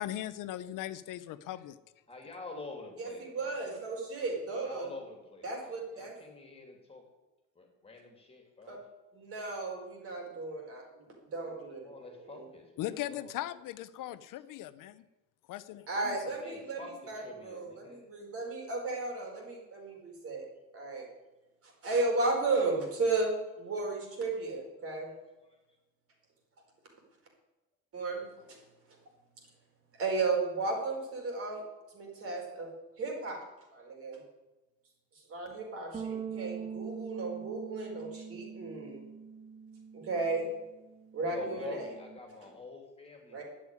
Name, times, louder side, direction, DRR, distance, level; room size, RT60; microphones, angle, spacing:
voice 1, 0.0-1.8 12.8-15.0 15.5-16.4, left 13 dB, 80° left, 14 dB, 0.8 m, -39 dB
voice 2, 2.1-3.6 4.6-7.0 7.5-8.8 11.8-13.3 16.4-18.1 25.5-25.6 41.3-43.4, left 3 dB, 20° left, 3 dB, 2.9 m, -47 dB
voice 3, 3.0-4.9 5.4-6.1 8.7-8.8 9.1-11.9 12.2-12.4 15.9-20.5 20.7-21.1 21.6-25.1 27.9-28.5 30.0-31.6 31.9-32.7 33.0-33.4 33.7-34.2 35.3-39.0 39.9-40.5 41.1-41.9 43.3-43.4, right 3 dB, 45° right, 1 dB, 4.7 m, -34 dB
Bass guitar, 35.9-42.2, right 6 dB, 20° right, 0.5 m, -43 dB
12.0 x 8.8 x 9.8 m, 1.1 s
cardioid pair, 170°, 31 cm